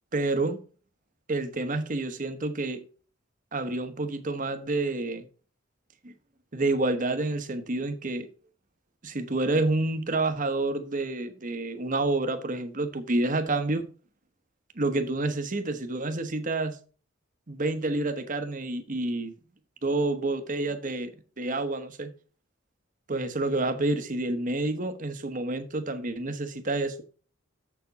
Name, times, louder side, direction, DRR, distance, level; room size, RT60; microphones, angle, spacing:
voice 1, 0.1-0.6 1.3-2.8 3.5-5.2 6.0-6.1 6.5-8.3 9.0-13.8 14.7-16.8 17.5-19.3 19.8-21.1 21.4-22.1 23.1-27.0, right 2 dB, 40° right, 1.1 m, -28 dB
7.4 x 7.1 x 4.1 m
head